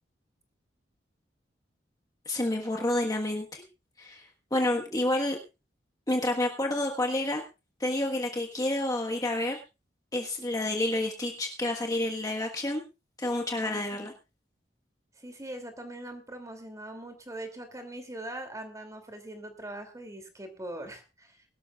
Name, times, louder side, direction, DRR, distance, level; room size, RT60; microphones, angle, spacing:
voice 1, 2.2-3.6 4.0-5.4 6.1-7.4 7.8-9.6 10.1-12.8 13.2-14.1, left 1 dB, 20° left, 2 dB, 1.4 m, -29 dB
voice 2, 13.6-14.1 15.2-21.4, right 1 dB, 20° right, 6 dB, 2.8 m, -42 dB
21.5 x 12.5 x 2.4 m, 0.27 s
head